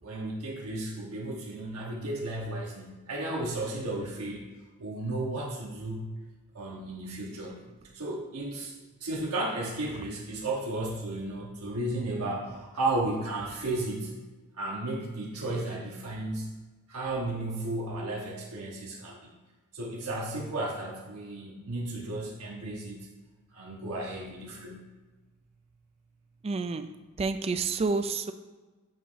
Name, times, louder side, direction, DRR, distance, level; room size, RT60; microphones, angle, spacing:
voice 1, 0.0-4.4 4.8-6.1 6.5-7.6 7.9-8.7 9.0-14.1 14.5-16.5 16.9-19.3 19.7-23.0 23.5-24.8, right 2 dB, 85° right, -3 dB, 1.1 m, -34 dB
voice 2, 26.4-26.9 27.2-28.3, right 4 dB, 25° right, 10 dB, 0.3 m, -29 dB
7.3 x 3.0 x 5.5 m, 1.3 s
head